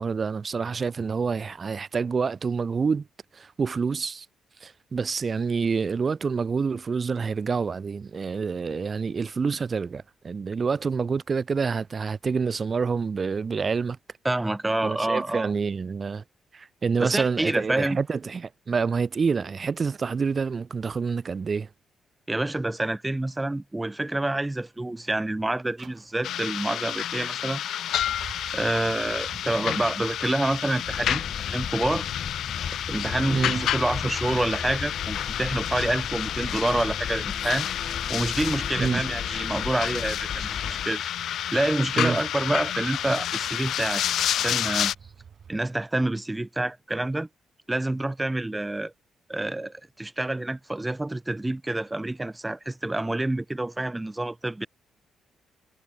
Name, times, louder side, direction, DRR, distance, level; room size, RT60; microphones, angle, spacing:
voice 1, 0.0-3.1 3.3-4.3 4.6-14.0 14.8-16.2 16.5-21.7 33.3-33.7 38.8-39.0 42.0-42.2, right 5 dB, 35° right, 2.0 m, -27 dB
voice 2, 14.2-15.5 17.0-18.0 22.3-27.6 28.5-32.1 32.8-37.7 38.1-41.0 41.5-44.0 44.4-44.9 45.5-47.3 47.7-48.9 49.3-54.7, right 2 dB, 10° right, 1.3 m, -27 dB
sound 1, 25.8-45.6, right 7 dB, 50° right, 7.7 m, -49 dB
sound 2, 26.2-44.9, left 11 dB, 75° left, 0.4 m, -30 dB
sound 3, 30.9-40.9, left 7 dB, 50° left, 3.7 m, -36 dB
cardioid pair, 130°, 0 cm